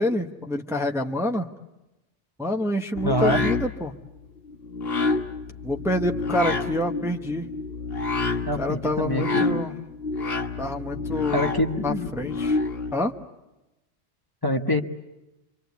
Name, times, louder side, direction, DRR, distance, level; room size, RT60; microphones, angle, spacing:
voice 1, 0.0-1.5 2.4-3.9 5.6-7.5 8.5-9.8 10.6-11.4 11.8-12.6 12.9-13.1, left 1 dB, 5° right, 3 dB, 0.9 m, -27 dB
sound 1, 2.9-12.9, left 3 dB, 60° left, 1.6 m, -28 dB
voice 2, 3.0-3.4 8.4-9.6 11.3-12.1 14.4-14.8, equal, 20° left, 4 dB, 1.1 m, -25 dB
28.5 x 25.0 x 8.2 m, 0.98 s
omnidirectional pair, 1.1 m